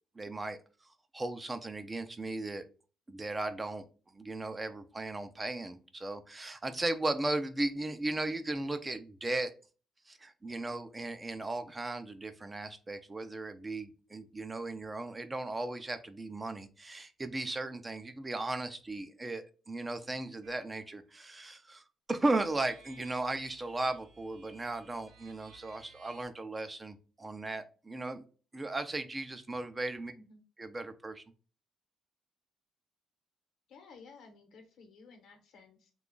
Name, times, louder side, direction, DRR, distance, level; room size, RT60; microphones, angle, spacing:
voice 1, 0.2-0.6 1.1-2.6 3.1-3.8 4.1-9.5 10.1-28.2 28.5-30.1 30.6-31.2, right 2 dB, 20° right, 9 dB, 0.4 m, -36 dB
sound 1, 20.4-20.7 22.3-26.3, right 4 dB, 75° right, 0.7 m, -59 dB
voice 2, 33.7-35.9, left 4 dB, 75° left, 5 dB, 0.9 m, -55 dB
2.9 x 2.3 x 3.7 m, 0.36 s
cardioid pair, 90°, 0 cm